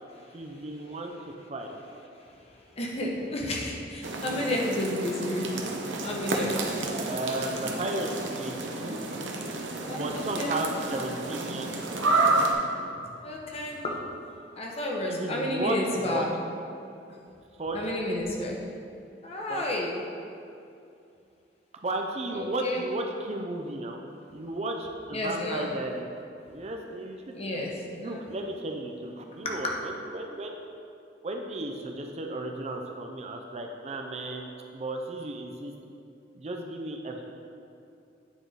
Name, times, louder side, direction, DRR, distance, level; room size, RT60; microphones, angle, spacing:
voice 1, 0.3-1.8 6.9-8.1 8.4-9.0 9.9-11.7 15.1-16.3 17.6-17.8 19.5-19.6 21.8-24.0 24.3-26.1 26.5-30.6 31.2-35.7 36.4-37.2, right 2 dB, 35° right, 2 dB, 0.5 m, -34 dB
voice 2, 2.8-5.5 6.0-6.9 9.8-10.0 10.4-10.5 13.2-14.0 14.6-16.3 17.7-18.6 19.2-20.0 22.3-22.8 25.1-25.7 27.3-28.2 29.4-29.6, left 1 dB, 35° left, -1 dB, 0.9 m, -31 dB
sound 1, 4.0-12.5, right 2 dB, 90° right, 0.8 m, -30 dB
9.0 x 4.8 x 3.9 m, 2.6 s
head